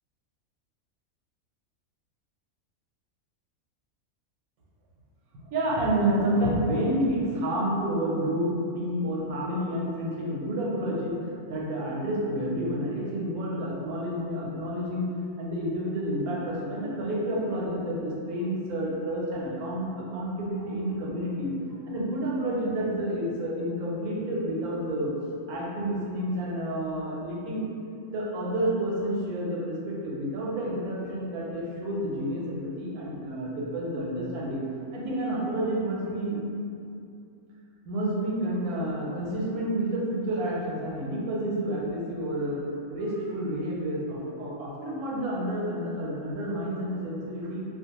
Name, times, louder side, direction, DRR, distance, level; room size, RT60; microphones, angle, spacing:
voice 1, 5.3-15.1 15.4-21.5 21.9-25.1 25.5-27.6 28.1-34.6 34.9-36.4 37.9-42.6 42.9-47.7, right 1 dB, 85° right, -4 dB, 1.1 m, -29 dB
2.4 x 2.0 x 2.8 m, 2.5 s
omnidirectional pair, 1.5 m